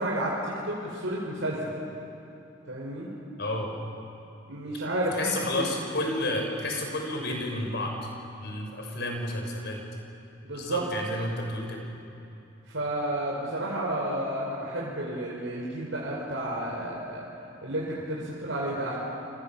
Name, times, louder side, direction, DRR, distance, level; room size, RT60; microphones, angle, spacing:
voice 1, 0.0-1.7 2.7-3.1 4.5-5.7 6.4-6.5 10.4-10.8 12.7-17.2 17.6-18.9, right 1 dB, 80° right, -4 dB, 4.8 m, -31 dB
voice 2, 3.4-3.7 5.1-7.9 8.4-9.8 10.5-11.8, left 1 dB, 65° left, 2 dB, 5.8 m, -31 dB
29.0 x 26.5 x 7.4 m, 2.9 s
head